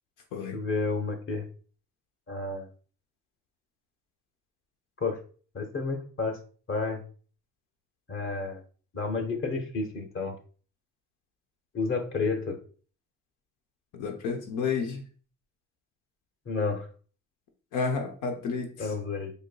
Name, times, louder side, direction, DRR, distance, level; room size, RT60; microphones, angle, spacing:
voice 1, 0.5-1.4 2.3-2.7 5.0-5.2 5.5-6.4 6.7-7.0 8.1-8.6 8.9-10.3 11.7-12.6 16.5-16.9 18.8-19.3, left 4 dB, 45° left, 1.0 m, -30 dB
voice 2, 13.9-15.0 17.7-18.9, left 5 dB, 85° left, 0.8 m, -31 dB
4.5 x 2.7 x 2.3 m
cardioid pair, 90°, 30 cm